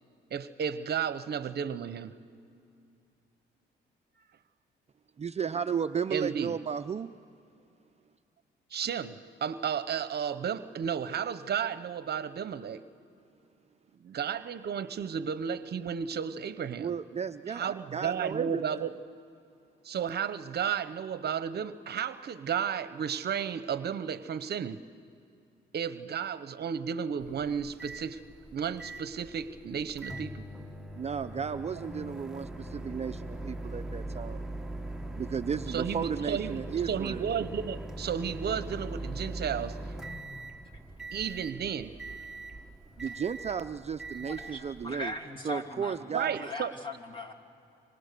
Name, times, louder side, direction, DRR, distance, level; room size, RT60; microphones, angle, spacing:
voice 1, 0.3-2.1 6.1-6.6 8.7-12.8 14.0-16.9 17.5-18.9 19.8-24.8 25.7-28.2 28.5-30.4 35.7-39.8 41.1-42.0 46.1-46.7, right 7 dB, 55° right, 13 dB, 0.9 m, -33 dB
voice 2, 5.2-7.1 16.8-18.9 31.0-34.4 35.1-37.3 43.0-45.1 45.4-46.5, right 7 dB, 35° right, 9 dB, 0.6 m, -34 dB
Microwave oven, 27.2-45.2, right 1 dB, 5° right, 1.2 m, -41 dB
voice 3, 44.1-46.0 46.3-47.3, left 2 dB, 25° left, 3 dB, 2.9 m, -40 dB
27.0 x 25.0 x 6.8 m, 2.5 s
cardioid pair, 90°, 20 cm